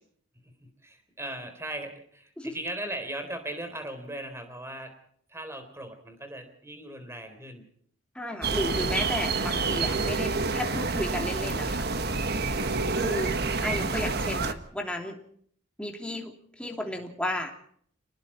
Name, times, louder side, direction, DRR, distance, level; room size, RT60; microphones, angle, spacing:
voice 1, 0.4-4.9 5.3-7.7 12.5-12.7, right 1 dB, 15° right, 7 dB, 3.8 m, -38 dB
voice 2, 8.1-11.9 13.0-13.3 13.6-15.2 15.8-16.3 16.6-17.5, left 1 dB, 5° left, 2 dB, 3.0 m, -33 dB
sound 1, 8.4-14.5, right 3 dB, 55° right, 1.5 m, -28 dB
29.5 x 20.0 x 4.4 m, 0.62 s
head